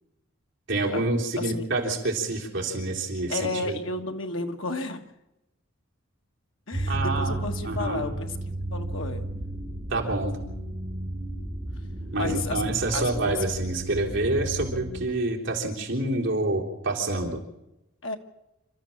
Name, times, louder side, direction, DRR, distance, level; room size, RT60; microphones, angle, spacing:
voice 1, 0.7-3.7 6.9-7.4 7.6-8.0 9.9-10.3 12.1-17.4, right 2 dB, 60° right, 0 dB, 3.5 m, -27 dB
voice 2, 3.3-5.1 6.7-9.2 12.1-13.4 18.0-18.2, left 3 dB, 65° left, 5 dB, 1.7 m, -32 dB
sound 1, 6.7-15.0, right 2 dB, 30° right, 4.8 m, -33 dB
28.0 x 13.0 x 7.2 m, 0.91 s
head